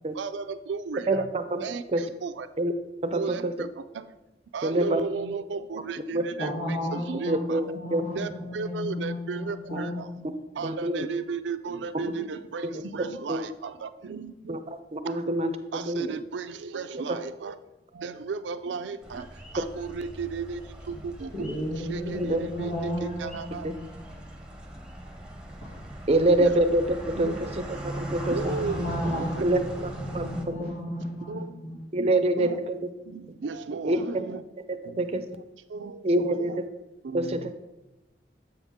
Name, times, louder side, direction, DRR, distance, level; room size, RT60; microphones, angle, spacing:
voice 1, 0.1-1.3 1.6-2.5 3.1-4.1 4.5-6.5 6.9-7.6 8.2-10.1 10.6-14.6 15.0-15.2 15.7-17.6 17.9-21.5 21.8-23.7 26.4-26.6 27.2-27.5 28.3-29.5 29.8-29.9 31.3-31.6 32.0-32.6 33.0-34.4 34.8-35.2 35.7-36.6 37.0-37.5, right 5 dB, 85° right, 11 dB, 0.4 m, -35 dB
voice 2, 1.1-1.6 1.9-2.0 2.6-2.7 3.0-3.5 4.6-5.0 6.1-6.2 7.3-7.6 7.9-8.0 10.6-11.1 13.3-13.5 14.5-14.6 14.9-16.2 22.2-22.4 26.1-27.3 27.7-28.4 29.4-29.6 30.1-30.7 31.9-32.7 33.8-34.0 35.0-35.2 36.0-36.6 37.1-37.5, right 1 dB, 35° right, 9 dB, 0.5 m, -25 dB
voice 3, 6.4-10.2 21.3-24.0 25.7-25.8 28.2-32.2, left 1 dB, 85° left, -9 dB, 2.3 m, -34 dB
sound 1, 19.0-30.4, right 1 dB, 5° right, 0.8 m, -39 dB
7.8 x 5.6 x 3.6 m, 1.0 s
head